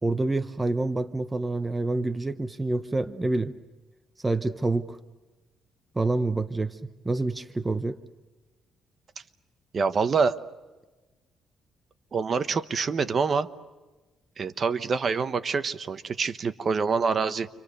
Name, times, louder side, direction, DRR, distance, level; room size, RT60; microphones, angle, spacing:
voice 1, 0.0-3.5 4.2-5.0 5.9-8.0, right 2 dB, 15° right, 0.9 m, -27 dB
voice 2, 9.7-10.4 12.1-13.5 14.4-17.5, right 5 dB, 40° right, 1.0 m, -26 dB
29.5 x 25.5 x 6.7 m
cardioid pair, 120°, 0 cm